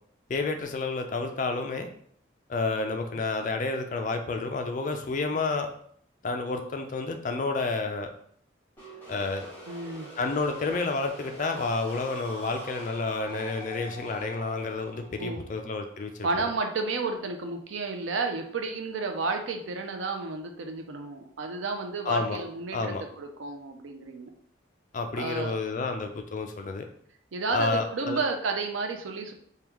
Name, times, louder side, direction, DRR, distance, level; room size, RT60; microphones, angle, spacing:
voice 1, 0.3-1.9 2.5-5.7 6.2-8.1 9.1-9.5 10.2-16.1 22.1-22.4 22.7-23.0 24.9-26.8 27.5-28.2, left 3 dB, 40° left, 5 dB, 0.3 m, -30 dB
sound 1, 8.8-16.5, right 1 dB, 10° left, 0.9 m, -45 dB
voice 2, 9.7-10.1 15.2-15.4 16.2-24.3 25.2-25.9 27.3-29.3, right 3 dB, 85° right, 5 dB, 0.5 m, -32 dB
3.5 x 2.2 x 3.0 m, 0.63 s
head